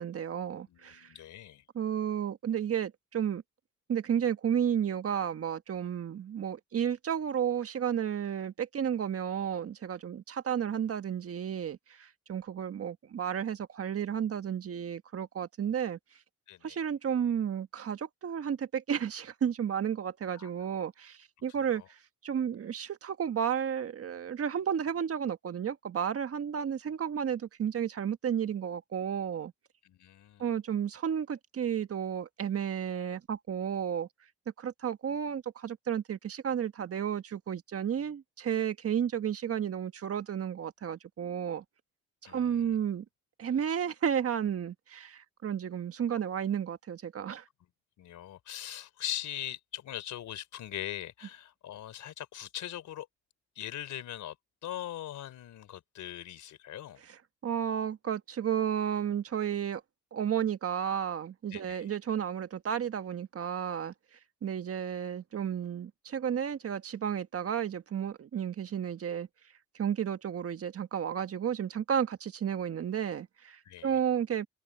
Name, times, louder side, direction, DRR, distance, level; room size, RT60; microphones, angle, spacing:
voice 1, 0.0-1.1 1.7-3.4 3.9-16.0 16.6-21.8 22.2-29.5 30.4-34.1 34.6-41.6 42.2-43.0 43.4-47.4 57.4-59.8 60.1-63.9 64.4-69.3 69.7-74.5, right 8 dB, 50° right, 1.5 m, -32 dB
voice 2, 0.7-1.6 16.5-16.8 20.3-20.5 21.5-21.9 29.8-30.5 42.2-42.8 48.0-53.1 53.6-54.4 54.6-57.0 61.5-61.9 73.6-74.0, left 12 dB, 75° left, 4.0 m, -41 dB
cardioid pair, 90°, 30 cm